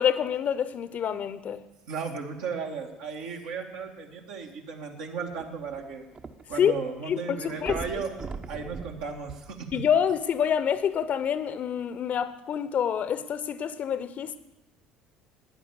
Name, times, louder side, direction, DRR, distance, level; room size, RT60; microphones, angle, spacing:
voice 1, 0.0-1.6 6.6-6.7 7.1-7.8 9.7-14.4, left 8 dB, 45° left, 0.9 m, -27 dB
voice 2, 1.9-6.0 6.5-8.2 8.5-9.8, right 5 dB, 65° right, 2.2 m, -35 dB
sound 1, 5.3-6.8 7.1-7.2 7.6-10.2 10.9-11.0, right 4 dB, 30° right, 1.1 m, -40 dB
15.5 x 10.0 x 7.2 m
figure-of-eight pair, 60°, 4 cm